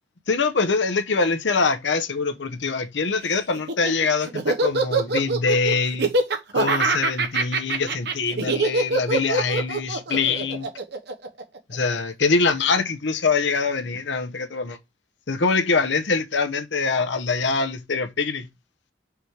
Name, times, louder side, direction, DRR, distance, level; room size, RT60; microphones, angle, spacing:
voice 1, 0.3-6.1 6.5-10.7 11.7-14.8 15.3-18.5, left 4 dB, 75° left, 0.9 m, -24 dB
Laughter, 3.5-12.0, right 3 dB, 60° right, 1.1 m, -24 dB
5.0 x 5.0 x 4.6 m
head